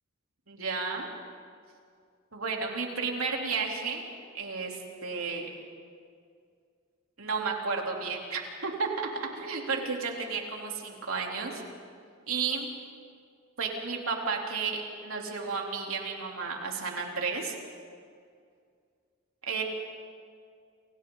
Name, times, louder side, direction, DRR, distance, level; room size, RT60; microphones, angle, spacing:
voice 1, 0.5-1.1 2.3-4.1 4.3-5.5 7.2-11.6 12.3-12.7 13.6-17.5 19.5-19.6, right 4 dB, 85° right, 0 dB, 3.5 m, -32 dB
30.0 x 28.0 x 4.0 m, 2.2 s
head